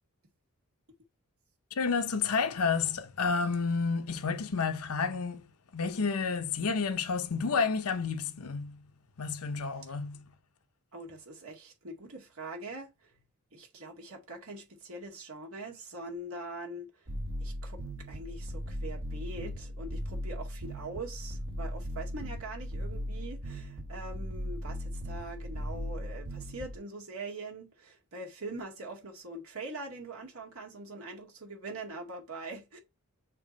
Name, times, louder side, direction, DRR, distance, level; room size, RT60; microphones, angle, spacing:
voice 1, 1.8-5.4 5.7-8.9 9.2-10.3, left 5 dB, 85° left, 0.8 m, -30 dB
voice 2, 10.9-13.1 13.5-17.0 17.4-32.8, right 2 dB, 75° right, 2.0 m, -43 dB
sound 1, 17.1-26.8, equal, 55° right, 1.3 m, -38 dB
6.7 x 3.0 x 5.2 m
head